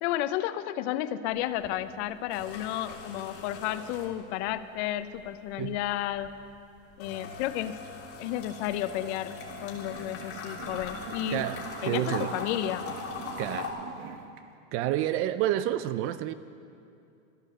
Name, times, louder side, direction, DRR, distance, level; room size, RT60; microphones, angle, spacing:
voice 1, 0.0-6.3 7.0-7.8 8.2-9.4 9.6-11.5 11.8-12.9, left 13 dB, 55° left, 13 dB, 0.8 m, -32 dB
sound 1, 1.3-1.7 2.0-4.6 4.9-13.7, left 5 dB, 35° left, 3.0 m, -41 dB
sound 2, 9.3-14.4, right 7 dB, 65° right, 1.3 m, -45 dB
voice 2, 11.3-12.3 13.4-13.8 14.7-16.3, right 13 dB, 35° right, 13 dB, 0.4 m, -29 dB
13.5 x 11.5 x 6.7 m, 2.5 s
hypercardioid pair, 120°, 40 cm